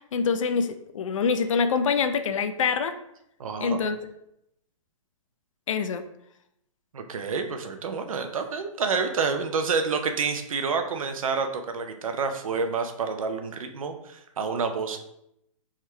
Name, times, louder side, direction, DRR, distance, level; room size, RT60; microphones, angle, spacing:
voice 1, 0.1-2.9 3.6-4.0 5.7-6.0, left 5 dB, 70° left, 10 dB, 0.5 m, -25 dB
voice 2, 3.4-3.8 6.9-15.0, right 5 dB, 85° right, 7 dB, 0.6 m, -28 dB
3.5 x 2.2 x 4.4 m, 0.80 s
hypercardioid pair, 160°, 17 cm